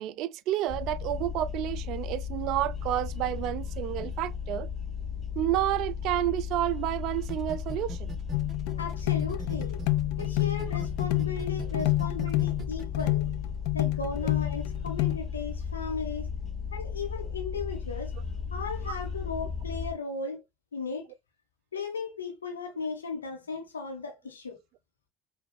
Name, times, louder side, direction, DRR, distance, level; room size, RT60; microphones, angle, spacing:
voice 1, 0.0-4.7 5.4-8.1 18.9-19.0, right 13 dB, 60° right, 0.3 m, -30 dB
sound 1, 0.7-19.9, left 6 dB, 30° left, 1.7 m, -35 dB
sound 2, 7.3-9.9 10.2-13.0, right 6 dB, 40° right, 0.8 m, -40 dB
sound 3, 8.3-15.2, left 19 dB, 65° left, 0.3 m, -29 dB
voice 2, 8.8-9.8 10.2-13.3 13.7-16.3 16.7-18.1 18.5-20.4 20.7-21.0 21.7-24.6, left 4 dB, 85° left, 1.2 m, -36 dB
5.0 x 2.6 x 3.1 m
figure-of-eight pair, 60°, 0 cm